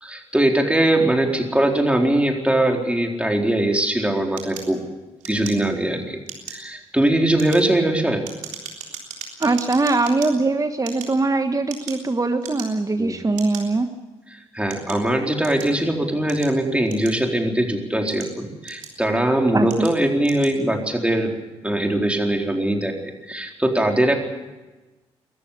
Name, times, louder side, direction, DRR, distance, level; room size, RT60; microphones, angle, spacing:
voice 1, 0.0-4.8 5.3-6.2 6.5-8.3 13.0-13.2 14.3-21.3 21.6-24.2, right 1 dB, 10° right, 2 dB, 4.2 m, -21 dB
sound 1, 4.4-5.9 6.2-6.7 7.2-10.3 10.8-12.1 12.4-12.9 13.4-13.6 14.3-15.8 16.3-17.5 17.9-19.1 19.7-20.0 20.2-20.6, right 7 dB, 70° right, 3.6 m, -37 dB
voice 2, 9.4-13.9 19.5-19.9, right 3 dB, 25° right, 8 dB, 1.4 m, -21 dB
22.5 x 14.0 x 8.4 m, 1.1 s
hypercardioid pair, 45°, 14 cm